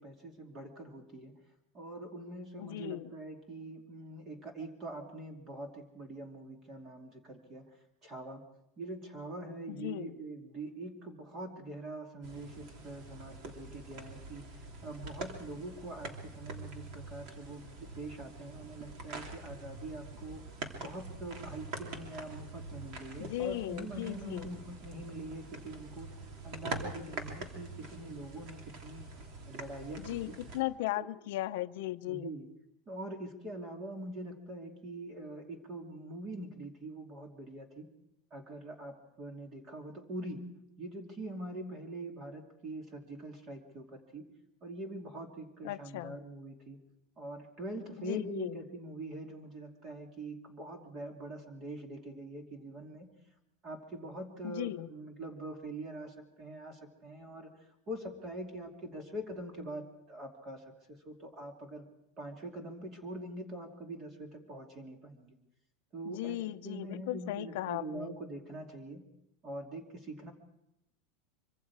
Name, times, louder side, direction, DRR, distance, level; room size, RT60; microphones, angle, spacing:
voice 1, 0.0-1.3 1.7-7.7 8.0-8.4 8.8-20.4 20.8-26.1 26.4-29.1 29.5-30.4 31.0-31.1 32.1-32.5 32.9-37.9 38.3-40.4 40.8-44.2 44.6-46.8 47.2-53.1 53.6-57.5 57.9-60.6 61.0-61.9 62.2-65.4 65.9-69.0 69.4-70.3, right 1 dB, 25° right, 3 dB, 2.7 m, -44 dB
voice 2, 2.6-3.1 9.7-10.1 23.2-24.5 30.0-32.3 45.6-46.2 48.0-48.6 54.4-54.9 66.0-68.2, left 16 dB, 60° left, 9 dB, 0.8 m, -37 dB
sound 1, 12.2-30.6, right 2 dB, 40° right, 3.0 m, -45 dB
25.0 x 25.0 x 4.8 m, 0.84 s
supercardioid pair, 170°, 0 cm